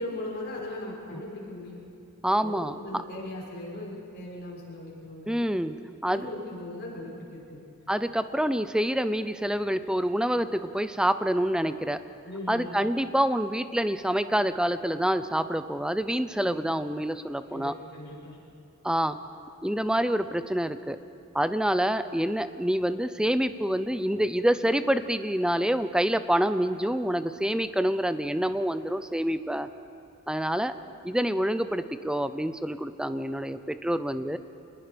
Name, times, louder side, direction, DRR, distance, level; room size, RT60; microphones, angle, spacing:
voice 1, 0.0-1.8 2.4-5.5 6.0-7.6 12.2-12.7 16.3-16.6 17.5-18.4, left 1 dB, 55° left, -5 dB, 6.1 m, -39 dB
voice 2, 2.2-2.8 5.3-5.8 6.0-6.3 7.9-12.0 12.5-17.7 18.8-19.2 19.6-21.0 21.3-29.7 30.3-30.7 31.0-34.4, equal, 5° right, 11 dB, 0.6 m, -27 dB
27.5 x 20.5 x 5.2 m, 2.5 s
head